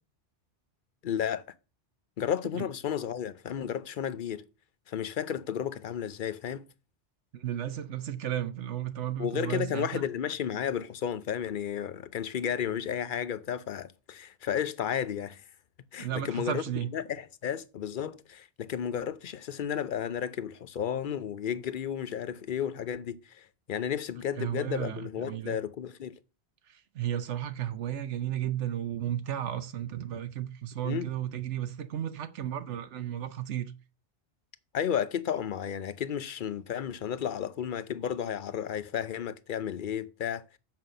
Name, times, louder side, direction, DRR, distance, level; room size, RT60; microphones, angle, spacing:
voice 1, 1.0-1.5 2.2-4.4 4.9-6.6 9.2-15.4 15.9-26.2 30.8-31.1 34.7-40.4, left 9 dB, 55° left, 0.7 m, -33 dB
voice 2, 7.3-10.0 16.0-16.9 24.4-25.6 26.9-33.7, right 11 dB, 85° right, 1.1 m, -33 dB
7.5 x 5.7 x 6.5 m
omnidirectional pair, 1.2 m